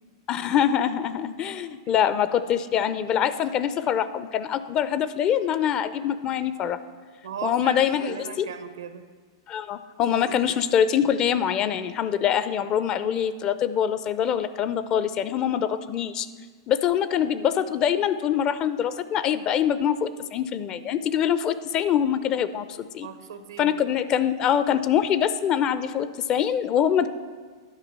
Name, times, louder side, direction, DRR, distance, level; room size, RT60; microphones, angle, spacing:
voice 1, 0.3-6.8 7.4-8.5 9.5-16.3 16.7-23.1 23.6-27.1, left 9 dB, 35° left, 13 dB, 0.5 m, -24 dB
voice 2, 7.2-9.0 23.0-23.7, right 7 dB, 80° right, 9 dB, 0.9 m, -37 dB
10.5 x 5.1 x 6.7 m, 1.5 s
hypercardioid pair, 105°, 2 cm